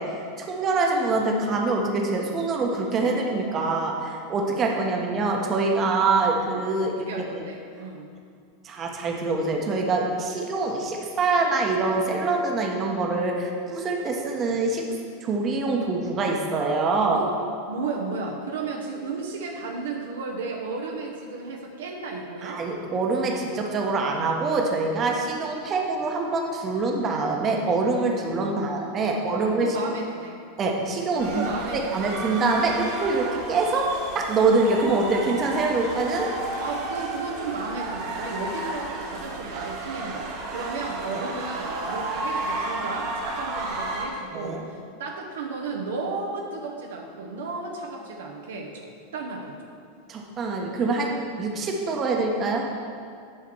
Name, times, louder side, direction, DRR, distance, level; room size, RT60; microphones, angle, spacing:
voice 1, 0.0-7.1 8.6-14.9 15.2-17.2 22.4-29.8 30.6-31.4 31.7-36.3 44.3-44.6 50.1-52.7, right 3 dB, 30° right, 1 dB, 1.2 m, -25 dB
voice 2, 6.8-8.1 17.1-17.3 17.7-22.6 28.5-30.4 31.1-32.0 36.6-48.9 49.1-49.6, right 3 dB, 65° right, 0 dB, 1.0 m, -34 dB
sound 1, 31.2-44.1, right 2 dB, 50° right, 1.7 m, -32 dB
10.0 x 4.9 x 6.1 m, 2.3 s
figure-of-eight pair, 85°, 0 cm